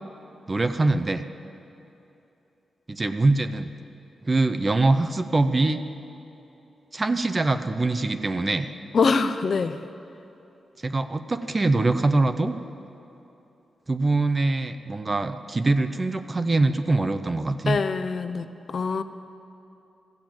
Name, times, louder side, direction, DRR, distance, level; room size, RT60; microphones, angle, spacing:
voice 1, 0.5-1.3 2.9-3.7 4.2-5.8 6.9-8.7 10.8-12.5 13.9-17.8, right 2 dB, 20° right, 10 dB, 0.5 m, -23 dB
voice 2, 8.9-9.8 17.7-19.0, left 4 dB, 45° left, 11 dB, 0.4 m, -24 dB
14.0 x 7.6 x 8.7 m, 2.9 s
wide cardioid pair, 165°, 0 cm